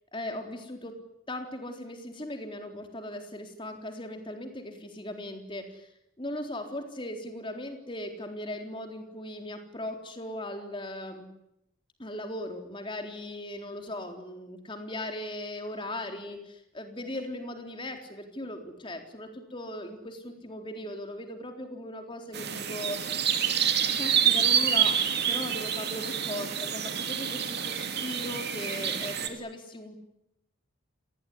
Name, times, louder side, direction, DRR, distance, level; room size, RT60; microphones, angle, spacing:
voice 1, 0.1-1.0 1.3-5.9 6.2-11.3 12.0-23.0 24.0-30.0, left 1 dB, 25° left, 5 dB, 3.9 m, -38 dB
sound 1, 22.3-29.3, right 8 dB, 50° right, 3.0 m, -27 dB
29.5 x 19.0 x 9.8 m, 0.82 s
head